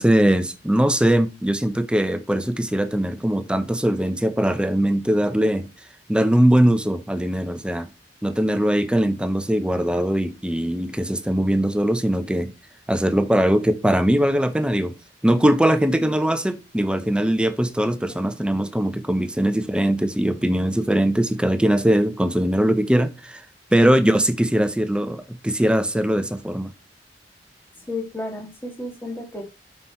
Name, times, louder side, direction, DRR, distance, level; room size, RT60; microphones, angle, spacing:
voice 1, 0.0-5.7 6.1-7.9 8.2-12.5 12.9-14.9 15.2-23.4 23.7-26.7, right 1 dB, 5° right, 0.6 m, -21 dB
voice 2, 27.9-29.4, left 2 dB, 10° left, 2.1 m, -32 dB
8.2 x 5.8 x 4.3 m
head